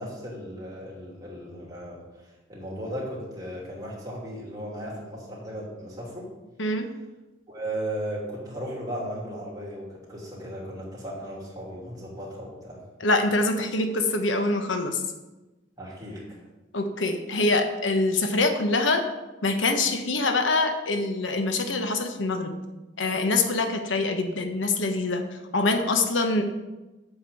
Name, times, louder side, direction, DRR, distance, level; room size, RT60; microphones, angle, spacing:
voice 1, 0.0-6.3 7.5-12.8 15.8-16.4, right 1 dB, 20° right, -5 dB, 3.0 m, -36 dB
voice 2, 13.0-15.0 16.7-19.0 19.4-22.6 23.0-25.2 25.5-26.4, left 2 dB, 85° left, 6 dB, 1.1 m, -24 dB
8.0 x 5.9 x 7.2 m, 1.1 s
head